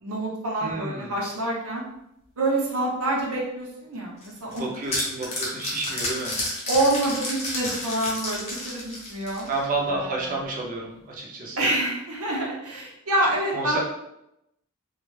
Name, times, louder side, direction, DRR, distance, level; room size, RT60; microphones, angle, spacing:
voice 1, 0.0-1.8 2.4-4.7 6.7-9.5 9.9-10.3 11.6-13.8, right 1 dB, 80° right, -2 dB, 0.7 m, -27 dB
voice 2, 0.6-1.2 4.6-6.4 9.5-11.6 13.5-13.8, right 2 dB, 40° right, -2 dB, 0.6 m, -30 dB
sound 1, 4.2-9.7, left 1 dB, 30° left, 0.7 m, -31 dB
2.3 x 2.0 x 3.1 m, 0.82 s
head